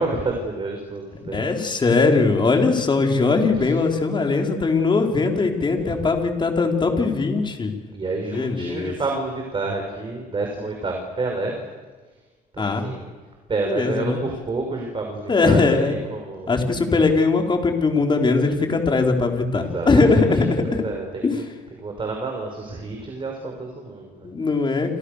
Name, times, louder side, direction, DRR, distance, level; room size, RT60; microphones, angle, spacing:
voice 1, 0.0-1.5 3.5-3.7 5.8-6.1 7.9-11.6 12.5-13.1 13.5-16.5 19.6-21.5 21.8-24.3, right 3 dB, 30° right, 2 dB, 6.0 m, -29 dB
voice 2, 1.2-7.7 8.3-8.9 12.6-12.8 13.7-14.2 15.3-15.9 16.5-20.8 21.2-21.4 24.2-25.0, left 3 dB, 25° left, 3 dB, 4.8 m, -20 dB
29.0 x 27.5 x 6.8 m, 1.4 s
cardioid pair, 110°, 17 cm